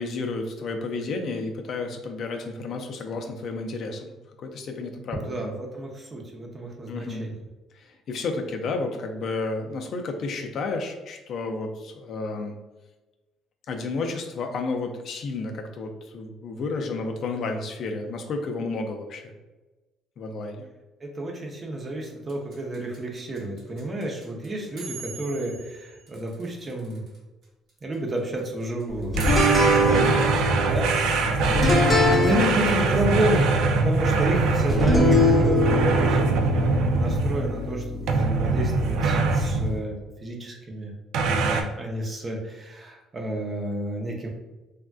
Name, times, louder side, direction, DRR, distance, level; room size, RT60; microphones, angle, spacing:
voice 1, 0.0-4.1 4.4-5.5 6.9-7.3 7.7-12.6 13.7-19.3 20.2-20.6 29.8-30.0 31.2-31.7, left 3 dB, 50° left, 4 dB, 0.3 m, -32 dB
voice 2, 5.3-7.3 21.0-27.0 27.8-29.2 29.6-30.2 30.7-31.6 32.2-40.0 40.2-40.9 41.2-44.3, right 1 dB, 25° right, 1 dB, 0.5 m, -30 dB
sound 1, 22.0-27.2 27.4-27.5 27.7-30.0, right 4 dB, 55° right, 1.0 m, -42 dB
sound 2, 29.1-39.8, left 1 dB, 10° left, 0.8 m, -24 dB
sound 3, 29.2-37.6 38.1-39.8 41.1-41.6, right 4 dB, 75° right, 0.3 m, -23 dB
3.3 x 2.4 x 2.3 m, 1.1 s
cardioid pair, 145°, 0 cm